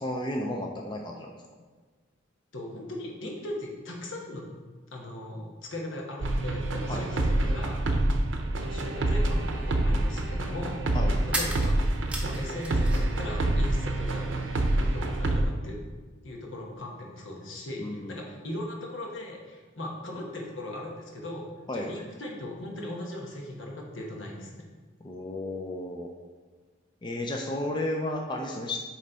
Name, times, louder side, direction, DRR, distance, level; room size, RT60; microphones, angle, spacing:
voice 1, 0.0-1.3 6.9-7.1 10.9-11.1 17.8-18.2 21.7-21.9 25.0-26.1 27.0-28.8, left 1 dB, 25° left, 1 dB, 0.4 m, -33 dB
voice 2, 2.5-4.5 4.9-7.8 8.6-10.8 11.3-11.7 12.2-14.3 14.9-15.8 16.2-24.6, left 1 dB, 80° left, -1 dB, 1.2 m, -38 dB
sound 1, 6.2-15.4, right 1 dB, 75° right, 0.6 m, -27 dB
sound 2, 11.3-13.2 13.5-14.4, right 1 dB, 5° right, 0.7 m, -36 dB
7.8 x 3.1 x 4.0 m, 1.4 s
head